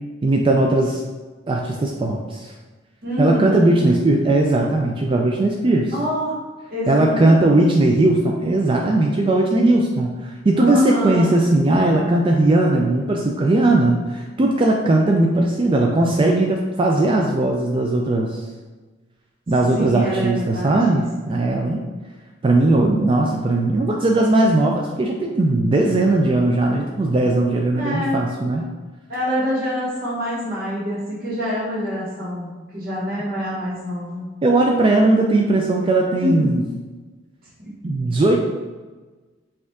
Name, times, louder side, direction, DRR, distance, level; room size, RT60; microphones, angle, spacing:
voice 1, 0.2-1.0 1.5-2.5 3.2-5.9 6.9-18.4 19.5-21.8 22.4-28.7 34.4-36.6 37.8-38.4, right 2 dB, 30° right, 0 dB, 0.3 m, -18 dB
voice 2, 3.0-3.7 5.9-6.3 6.7-7.7 8.4-8.5 10.6-11.3 19.7-21.0 21.3-21.4 27.8-28.2 29.1-34.3 36.2-36.6 37.6-37.7, equal, 50° right, -9 dB, 1.0 m, -25 dB
5.1 x 2.4 x 3.5 m, 1.3 s
head